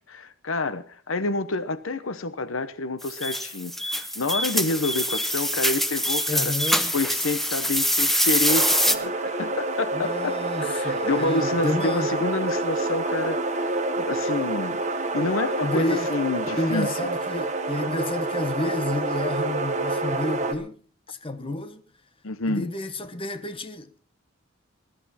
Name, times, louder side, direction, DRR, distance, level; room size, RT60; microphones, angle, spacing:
voice 1, 0.1-6.5 6.9-14.8 15.1-17.1 22.2-22.7, left 2 dB, 70° left, 0.9 m, -28 dB
sound 1, 3.0-9.0, equal, ahead, 0.8 m, -24 dB
voice 2, 6.3-6.9 9.9-12.1 15.6-16.1 16.5-20.8 21.1-21.8 22.5-24.0, left 1 dB, 25° left, 1.1 m, -30 dB
sound 2, 8.5-20.5, right 2 dB, 35° right, 1.5 m, -28 dB
21.0 x 12.0 x 4.2 m
head